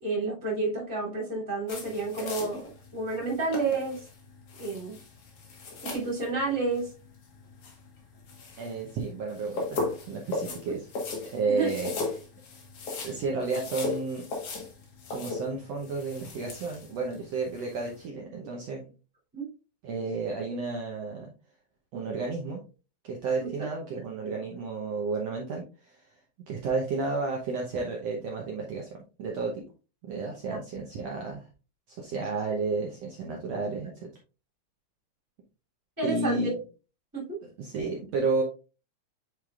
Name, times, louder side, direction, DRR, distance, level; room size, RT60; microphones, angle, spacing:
voice 1, 0.0-4.0 4.6-5.0 5.8-6.9 11.5-11.7 19.3-19.5 23.4-23.5 30.5-30.6 36.0-36.5 37.1-37.4, right 3 dB, 5° right, -3 dB, 2.4 m, -30 dB
sound 1, 1.7-18.0, left 3 dB, 50° left, 2.1 m, -38 dB
voice 2, 8.6-10.9 11.3-11.9 13.0-14.2 15.1-18.8 19.8-21.3 21.9-22.6 23.0-26.1 26.5-28.9 29.2-29.6 30.0-31.5 31.9-34.1 36.0-36.6 37.6-38.4, right 3 dB, 85° right, -1 dB, 1.4 m, -32 dB
8.5 x 4.6 x 2.4 m, 0.33 s
omnidirectional pair, 4.2 m